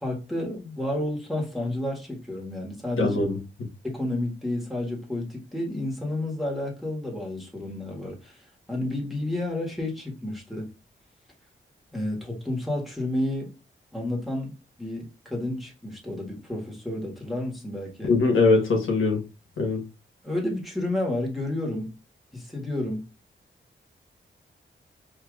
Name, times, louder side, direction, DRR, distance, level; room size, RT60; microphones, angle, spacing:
voice 1, 0.0-3.2 3.8-8.4 8.7-10.7 11.9-13.5 13.9-18.1 20.2-22.0 22.3-23.1, left 1 dB, ahead, 1.6 m, -31 dB
voice 2, 3.0-3.4 18.1-19.2 19.6-19.8, left 3 dB, 80° left, 1.3 m, -21 dB
4.7 x 2.8 x 2.4 m
cardioid pair, 70°, 21 cm